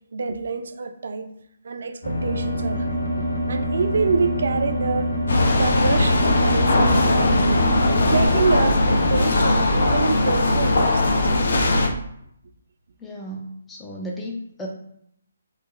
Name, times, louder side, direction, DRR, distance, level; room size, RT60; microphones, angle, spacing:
voice 1, 0.1-1.3 1.6-3.0 3.5-5.1 5.5-7.6 8.1-11.2, right 4 dB, 50° right, 7 dB, 0.5 m, -26 dB
sound 1, 2.0-8.3, equal, 80° left, 1.6 m, -26 dB
sound 2, 5.3-11.9, left 2 dB, 60° left, 0.7 m, -19 dB
voice 2, 13.0-14.7, equal, 5° left, -2 dB, 0.5 m, -34 dB
3.8 x 3.2 x 4.3 m, 0.72 s
hypercardioid pair, 175°, 0 cm